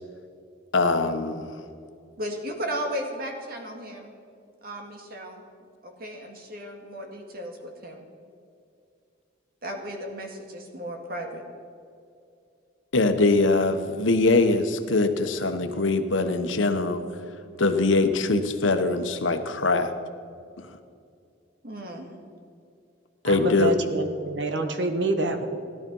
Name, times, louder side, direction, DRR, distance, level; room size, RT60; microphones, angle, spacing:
voice 1, 0.7-1.4 12.9-17.0 17.6-19.9 20.6-20.7 23.2-23.8, left 3 dB, 90° left, 8 dB, 1.1 m, -22 dB
voice 2, 2.2-4.1 4.6-5.4 5.8-8.1 9.6-11.4 21.6-22.1, equal, 50° right, 3 dB, 2.1 m, -35 dB
voice 3, 23.2-25.5, right 2 dB, 70° right, 6 dB, 1.3 m, -27 dB
17.0 x 11.5 x 5.5 m, 2.4 s
head